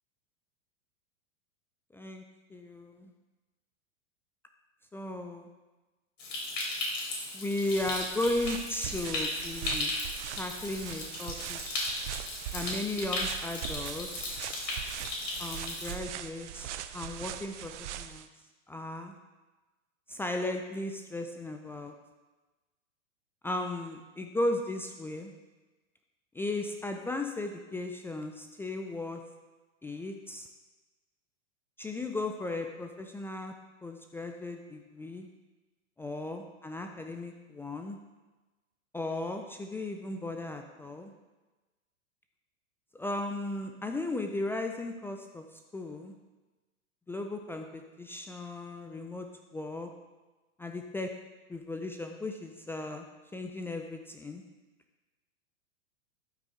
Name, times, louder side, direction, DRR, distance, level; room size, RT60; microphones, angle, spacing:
voice 1, 1.9-2.2 2.5-3.1 4.9-5.5 7.3-9.9 10.4-11.6 12.5-14.4 15.4-17.7 18.0-18.3 18.7-19.1 20.1-21.9 23.4-25.3 26.3-29.2 29.8-30.5 31.8-33.5 33.8-35.3 36.0-38.0 38.9-41.1 42.9-45.4 45.7-46.1 47.1-49.3 49.5-49.9 50.6-51.1 51.5-53.1 53.3-54.4, left 2 dB, 5° left, 4 dB, 0.3 m, -36 dB
Stream, 6.2-15.9, left 2 dB, 70° left, 3.5 m, -36 dB
sound 1, 7.6-18.3, right 11 dB, 65° right, 0.6 m, -41 dB
12.0 x 6.3 x 3.7 m, 1.2 s
hypercardioid pair, 105°, 38 cm